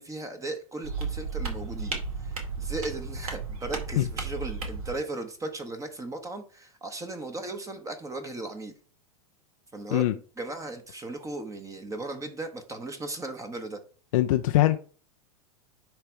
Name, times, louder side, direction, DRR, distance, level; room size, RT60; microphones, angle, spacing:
voice 1, 0.0-8.7 9.7-10.0 10.4-13.8, right 2 dB, 15° right, 1.2 m, -37 dB
sound 1, 0.8-4.9, right 4 dB, 70° right, 2.4 m, -34 dB
voice 2, 14.1-14.8, left 15 dB, 65° left, 0.6 m, -22 dB
10.0 x 3.4 x 4.5 m
hypercardioid pair, 95°, 19 cm